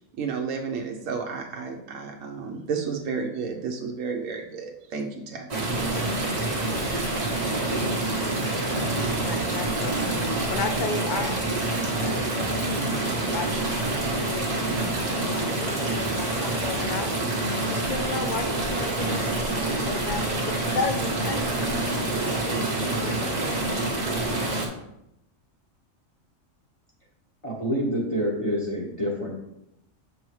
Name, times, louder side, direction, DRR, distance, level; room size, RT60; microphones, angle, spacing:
voice 1, 0.2-5.5, right 5 dB, 90° right, 2 dB, 1.1 m, -32 dB
sound 1, 5.5-24.7, right 2 dB, 35° right, 1.1 m, -27 dB
voice 2, 9.0-12.6 13.3-17.1 17.7-19.3 19.6-20.3 20.7-21.6 22.2-23.6, left 4 dB, 50° left, 7 dB, 0.7 m, -34 dB
voice 3, 27.4-29.3, equal, 25° left, -4 dB, 1.4 m, -27 dB
6.9 x 5.4 x 3.1 m, 0.83 s
omnidirectional pair, 1.3 m